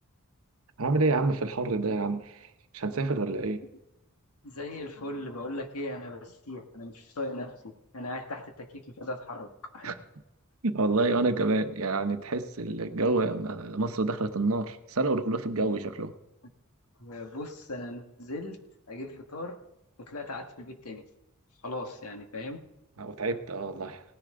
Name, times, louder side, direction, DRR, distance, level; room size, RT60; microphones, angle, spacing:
voice 1, 0.8-2.3 2.7-3.6 9.8-9.9 10.6-16.1 23.0-24.0, right 3 dB, 70° right, 1.0 m, -28 dB
voice 2, 4.4-9.5 9.7-9.9 17.0-18.6 18.9-19.6 20.0-21.0 21.6-22.6, left 1 dB, 85° left, 1.6 m, -38 dB
18.0 x 10.5 x 3.8 m
head